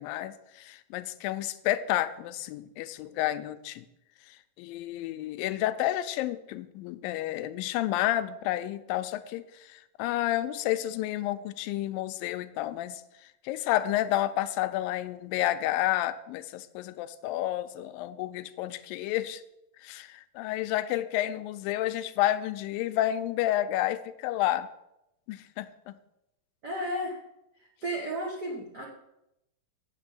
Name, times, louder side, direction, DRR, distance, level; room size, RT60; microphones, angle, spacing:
voice 1, 0.0-3.9 4.6-13.0 13.4-19.4 19.8-24.7 25.3-25.9, left 14 dB, 90° left, 12 dB, 2.3 m, -30 dB
voice 2, 26.6-27.2 27.6-28.8, equal, 90° right, -1 dB, 0.9 m, -33 dB
7.8 x 6.1 x 7.4 m, 0.85 s
omnidirectional pair, 4.0 m